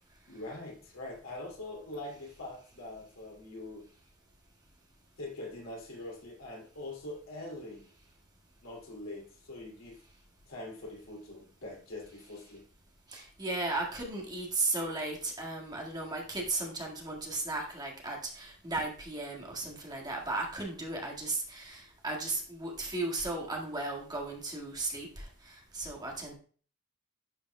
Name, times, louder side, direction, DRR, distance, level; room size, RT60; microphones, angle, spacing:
voice 1, 0.3-3.9 5.2-7.9 8.6-10.0 10.5-12.6, left 2 dB, 85° left, -1 dB, 2.5 m, -43 dB
voice 2, 13.1-26.3, right 2 dB, 20° right, -1 dB, 1.7 m, -35 dB
11.0 x 5.1 x 2.2 m, 0.41 s
head